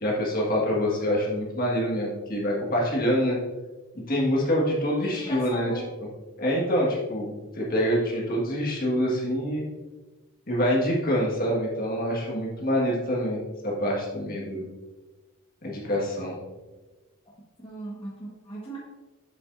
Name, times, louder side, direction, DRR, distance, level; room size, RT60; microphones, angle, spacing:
voice 1, 0.0-3.4 4.1-5.7 6.4-9.6 10.5-14.6 15.6-16.4, equal, 45° left, -3 dB, 1.7 m, -26 dB
voice 2, 5.0-5.9 17.6-18.8, equal, 25° left, -7 dB, 1.4 m, -38 dB
7.8 x 7.2 x 2.6 m, 1.2 s
head